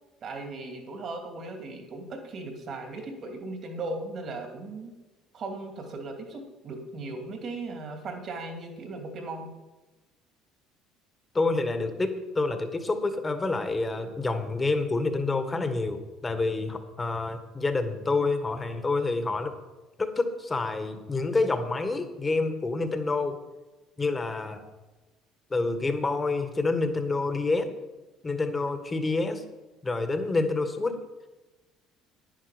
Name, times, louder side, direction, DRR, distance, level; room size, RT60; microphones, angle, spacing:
voice 1, 0.2-4.9 5.3-9.5, right 2 dB, 50° right, 4 dB, 2.7 m, -37 dB
voice 2, 11.3-19.5 20.0-23.4 24.0-24.7 25.5-27.7 28.2-29.4 29.8-31.0, left 3 dB, 25° left, 8 dB, 1.6 m, -28 dB
10.5 x 10.0 x 5.2 m, 1.1 s
supercardioid pair, 75°, 0 cm